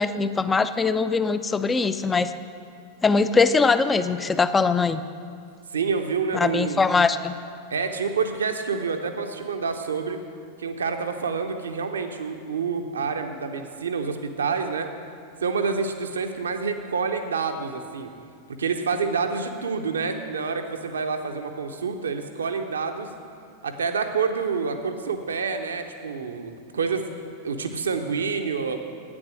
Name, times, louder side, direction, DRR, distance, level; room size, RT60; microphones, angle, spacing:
voice 1, 0.0-2.3 3.0-5.0 6.3-7.3, left 4 dB, 15° left, 12 dB, 0.4 m, -21 dB
voice 2, 5.7-6.8 7.7-10.2 10.6-14.9 15.4-18.1 18.6-23.1 23.6-27.1 27.4-28.8, right 5 dB, 70° right, 7 dB, 0.8 m, -28 dB
9.8 x 8.7 x 6.2 m, 2.2 s
figure-of-eight pair, 90°, 0 cm